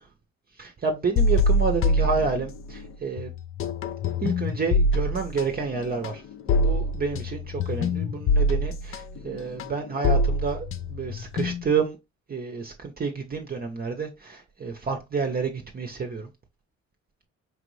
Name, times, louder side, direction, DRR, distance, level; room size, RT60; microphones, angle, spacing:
voice 1, 0.6-3.3 4.2-6.2 6.5-12.0 12.3-16.3, right 5 dB, 30° right, 0.7 m, -29 dB
sound 1, 1.2-2.9 3.2-11.8, left 1 dB, 45° left, 0.5 m, -25 dB
4.6 x 2.5 x 3.0 m
cardioid pair, 90°, 30 cm